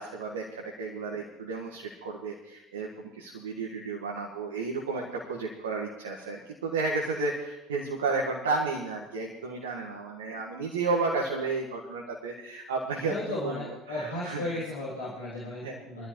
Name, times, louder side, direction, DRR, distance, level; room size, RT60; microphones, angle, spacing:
voice 1, 0.0-14.6 15.6-16.0, right 3 dB, 80° right, -2 dB, 1.7 m, -32 dB
voice 2, 13.1-16.1, left 1 dB, 80° left, -8 dB, 3.2 m, -35 dB
22.5 x 13.5 x 3.2 m, 0.95 s
figure-of-eight pair, 60°, 0 cm